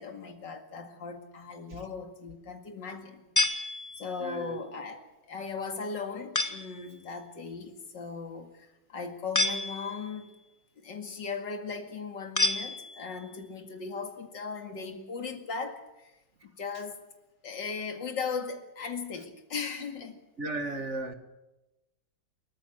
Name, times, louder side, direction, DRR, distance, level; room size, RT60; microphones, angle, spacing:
voice 1, 0.0-3.3 4.0-10.3 10.8-16.1 16.4-17.0 17.4-20.2, left 5 dB, 80° left, 6 dB, 2.8 m, -38 dB
sound 1, 3.4-4.3 6.3-6.8 9.3-10.2 12.4-13.2, left 2 dB, 10° left, 1.0 m, -30 dB
voice 2, 4.2-4.6 20.4-21.1, right 2 dB, 40° right, 8 dB, 1.8 m, -35 dB
29.0 x 14.0 x 7.7 m, 1.0 s
omnidirectional pair, 1.9 m